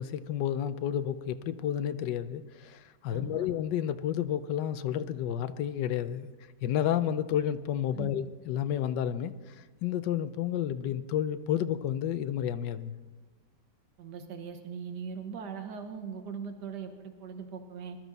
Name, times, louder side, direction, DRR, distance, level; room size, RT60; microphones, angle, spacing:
voice 1, 0.0-6.3 6.6-13.0, left 10 dB, 85° left, 1.3 m, -31 dB
voice 2, 3.1-3.5 7.9-8.2 14.0-18.0, right 6 dB, 75° right, 1.8 m, -40 dB
21.0 x 13.0 x 4.0 m
omnidirectional pair, 1.9 m